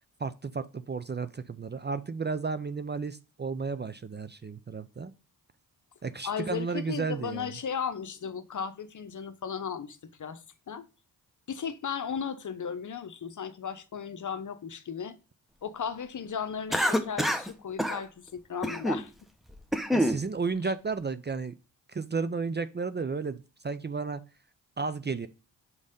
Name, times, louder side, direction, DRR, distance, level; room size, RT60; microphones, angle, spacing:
voice 1, 0.2-5.1 6.0-7.5 19.9-21.5 21.9-24.2 24.8-25.3, right 4 dB, 25° right, 0.5 m, -33 dB
voice 2, 6.2-10.4 10.7-10.9 11.5-15.2 15.6-19.1, left 7 dB, 45° left, 0.9 m, -35 dB
Cough, 16.7-17.5 17.8-18.0 18.6-19.0 19.5-20.2, equal, ahead, 1.0 m, -26 dB
5.3 x 4.8 x 5.1 m
supercardioid pair, 45°, 42 cm